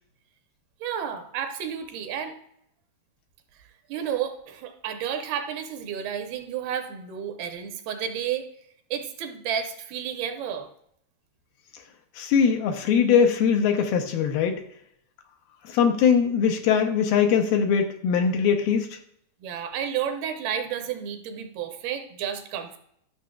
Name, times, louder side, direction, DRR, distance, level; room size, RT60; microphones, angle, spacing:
voice 1, 0.8-2.4 3.9-8.5 8.9-10.7 19.4-22.8, right 8 dB, 80° right, 6 dB, 2.7 m, -31 dB
voice 2, 12.2-14.6 15.6-19.0, left 7 dB, 75° left, 5 dB, 2.4 m, -21 dB
12.5 x 6.6 x 2.3 m, 0.70 s
omnidirectional pair, 4.5 m